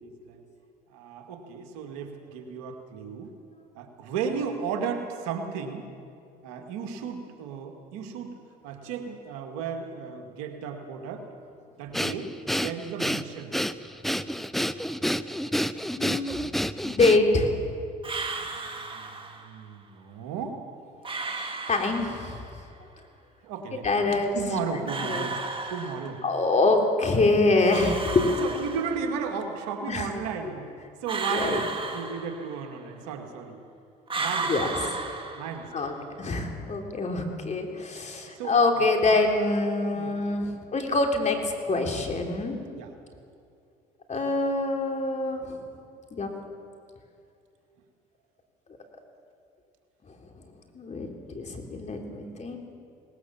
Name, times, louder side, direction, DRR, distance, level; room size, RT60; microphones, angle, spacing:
voice 1, 0.0-0.4 0.9-3.3 3.8-5.8 6.4-8.3 8.6-11.3 11.8-13.5 18.6-19.1 19.4-20.6 23.4-25.4 25.7-26.2 28.4-30.6 31.0-33.6 34.2-34.7 35.4-35.7 38.4-38.8 39.9-40.2 42.7-42.9, right 6 dB, 85° right, 5 dB, 2.0 m, -34 dB
Breathing, 11.9-17.5, equal, ahead, 0.7 m, -29 dB
voice 2, 16.0-16.3 16.8-17.6 21.7-22.4 23.8-24.3 24.8-25.3 26.2-28.4 29.9-30.1 31.1-31.6 34.5-34.7 35.7-35.9 36.2-42.6 44.1-45.6 46.1-46.3 50.8-51.1 51.3-52.6, left 2 dB, 35° left, 3 dB, 3.5 m, -25 dB
sound 1, 18.0-19.5 21.0-22.5 24.9-26.4 27.7-29.3 31.1-32.8 34.1-35.9, right 3 dB, 25° right, 2.4 m, -34 dB
19.5 x 19.0 x 7.2 m, 2.4 s
supercardioid pair, 70°, 19 cm